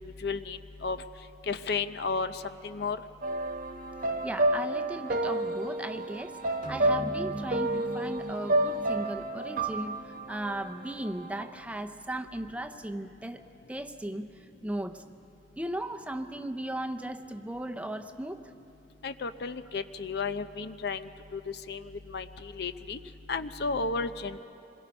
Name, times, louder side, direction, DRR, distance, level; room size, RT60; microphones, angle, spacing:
voice 1, 0.2-1.0 1.5-3.0 19.0-23.0 23.3-24.4, left 4 dB, 65° left, 11 dB, 0.6 m, -33 dB
sound 1, 3.2-11.5, right 1 dB, 50° right, 1.1 m, -30 dB
voice 2, 4.2-6.4 6.7-13.4 13.7-14.3 14.6-15.0 15.6-18.5, right 1 dB, 10° right, 7 dB, 0.6 m, -36 dB
sound 2, 6.6-11.2, equal, 45° left, 2.1 m, -42 dB
26.5 x 21.5 x 5.4 m, 2.8 s
head